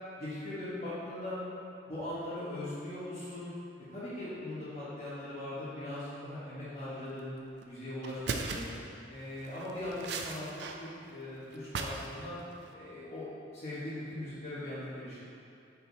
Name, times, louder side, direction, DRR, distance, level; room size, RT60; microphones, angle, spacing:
voice 1, 0.2-1.4 1.9-3.5 3.9-7.3 7.6-8.7 9.1-10.5 10.8-12.4 12.7-15.2, left 1 dB, 40° left, -12 dB, 1.5 m, -40 dB
sound 1, 7.5-7.6 8.0-8.8 9.4-10.8 11.0-12.1 12.4-12.7, right 4 dB, 75° right, 0.5 m, -38 dB
6.3 x 4.8 x 4.1 m, 2.6 s
head